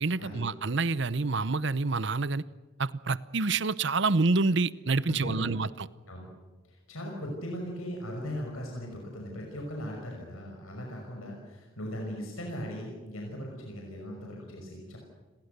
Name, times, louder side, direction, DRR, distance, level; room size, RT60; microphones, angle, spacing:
voice 1, 0.0-2.4 2.8-5.9, right 3 dB, 55° right, 18 dB, 0.8 m, -27 dB
voice 2, 5.1-5.6 6.1-6.3 6.9-15.0, equal, 85° left, 0 dB, 5.8 m, -38 dB
29.0 x 21.5 x 6.8 m, 1.3 s
head